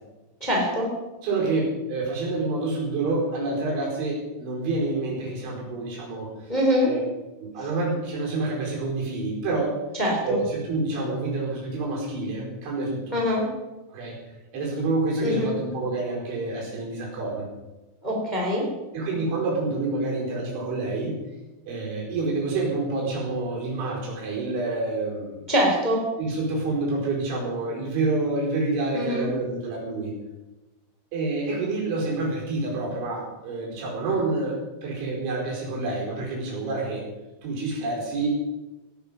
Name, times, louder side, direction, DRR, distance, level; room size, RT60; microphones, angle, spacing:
voice 1, 0.4-0.9 6.5-6.9 10.0-10.4 13.1-13.5 15.2-15.6 18.0-18.7 25.5-26.0 28.9-29.3, equal, 10° left, -1 dB, 2.9 m, -23 dB
voice 2, 1.2-6.5 6.8-7.0 7.4-9.8 10.2-13.2 13.9-14.2 14.5-17.5 18.9-21.2 21.7-25.4 26.2-30.1 31.1-37.1 37.4-38.4, right 3 dB, 75° right, -2 dB, 7.1 m, -28 dB
17.5 x 12.5 x 5.6 m, 1.1 s
omnidirectional pair, 5.5 m